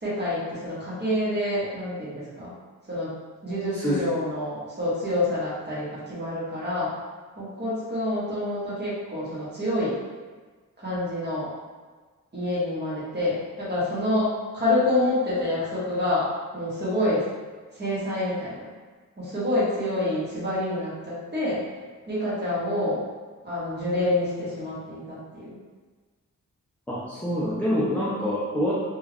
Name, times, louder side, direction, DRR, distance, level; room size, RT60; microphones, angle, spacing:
voice 1, 0.0-2.5 2.9-3.1 3.4-6.9 7.4-10.0 10.8-11.5 12.3-17.3 17.7-18.7 19.2-21.6 22.1-23.0 23.4-25.6, left 1 dB, 35° right, -9 dB, 1.0 m, -27 dB
voice 2, 26.9-28.7, equal, 5° left, -8 dB, 0.4 m, -26 dB
2.3 x 2.2 x 3.3 m, 1.4 s
wide cardioid pair, 145°, 32 cm